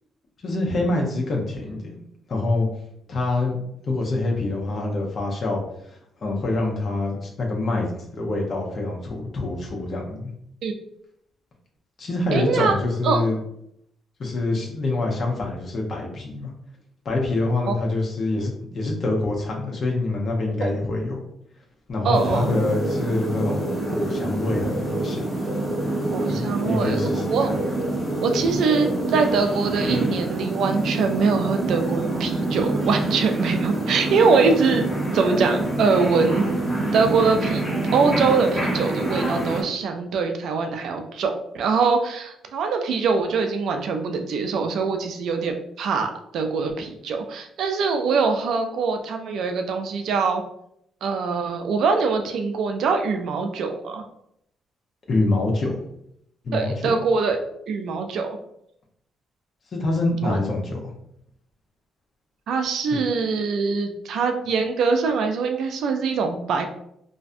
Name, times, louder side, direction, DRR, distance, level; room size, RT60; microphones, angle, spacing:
voice 1, 0.4-2.0 2.3-2.7 3.1-3.6 3.9-5.6 6.2-10.3 12.0-13.4 14.2-16.5 17.0-21.2 21.9-23.6 23.9-25.3 26.3-27.5 55.1-55.8 56.4-56.9 59.7-60.9, left 2 dB, 50° left, -1 dB, 0.7 m, -25 dB
voice 2, 12.3-12.7 13.0-13.2 17.7-17.8 20.6-20.7 22.0-22.5 26.1-27.5 28.2-36.5 36.9-37.6 37.9-50.4 51.0-54.0 56.5-57.4 57.7-58.3 60.2-60.4 62.5-66.7, right 4 dB, 75° right, 5 dB, 0.3 m, -23 dB
sound 1, 22.1-39.6, right 2 dB, 5° left, 0.9 m, -26 dB
2.5 x 2.2 x 2.5 m, 0.73 s
cardioid pair, 90°, 0 cm